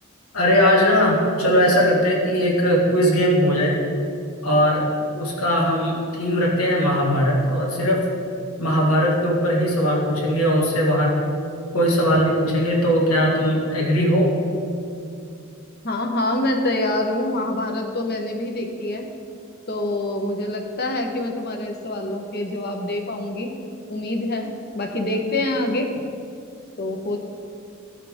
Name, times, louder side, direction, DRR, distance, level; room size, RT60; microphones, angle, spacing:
voice 1, 0.3-3.8 4.4-4.8 5.1-8.1 8.6-11.2 11.7-14.3, equal, 80° left, -2 dB, 1.7 m, -19 dB
voice 2, 15.8-19.1 19.7-23.5 23.9-25.9 26.8-27.2, left 1 dB, 45° left, 3 dB, 1.0 m, -25 dB
15.0 x 5.8 x 3.6 m, 2.4 s
head